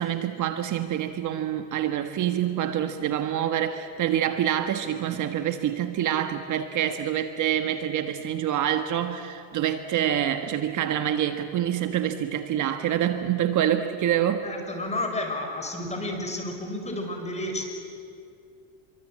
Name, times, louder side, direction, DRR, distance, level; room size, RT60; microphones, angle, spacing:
voice 1, 0.0-14.4, right 10 dB, 45° right, 8 dB, 1.4 m, -26 dB
voice 2, 14.4-17.6, left 1 dB, 15° left, 3 dB, 5.7 m, -31 dB
27.0 x 24.0 x 8.7 m, 2.5 s
supercardioid pair, 120°, 41 cm